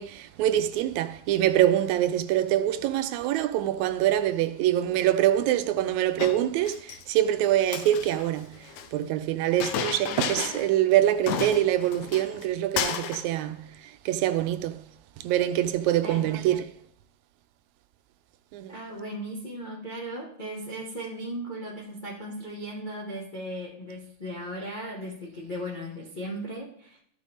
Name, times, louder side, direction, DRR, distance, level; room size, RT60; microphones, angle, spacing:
voice 1, 0.0-8.6 8.9-13.7 14.1-14.8 15.2-16.7 18.5-18.7, right 12 dB, 80° right, 1.9 m, -25 dB
Chink clink, 6.2-7.0 7.6-8.9 9.6-10.7 11.0-11.1 11.3-12.5 12.8-13.3, left 8 dB, 80° left, 1.9 m, -32 dB
voice 2, 16.0-16.4 18.7-27.0, equal, 45° left, 0.6 m, -37 dB
13.5 x 5.1 x 3.4 m
omnidirectional pair, 3.3 m